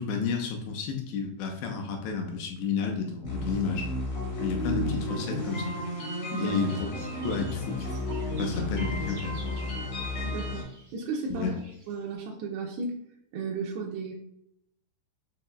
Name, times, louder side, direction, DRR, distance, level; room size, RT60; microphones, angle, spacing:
voice 1, 0.0-3.9 4.4-5.8 6.4-6.9 7.2-8.0 8.4-9.7 11.3-11.5, left 5 dB, 85° left, 2 dB, 2.7 m, -31 dB
sound 1, 3.2-10.6, left 1 dB, 65° left, 1.6 m, -32 dB
sound 2, 5.4-12.1, right 2 dB, 65° right, 1.0 m, -52 dB
voice 2, 10.2-10.7 10.9-11.6 11.9-12.9 13.3-14.2, right 3 dB, 85° right, 0 dB, 2.3 m, -34 dB
7.1 x 2.8 x 2.3 m, 0.77 s
omnidirectional pair, 5.2 m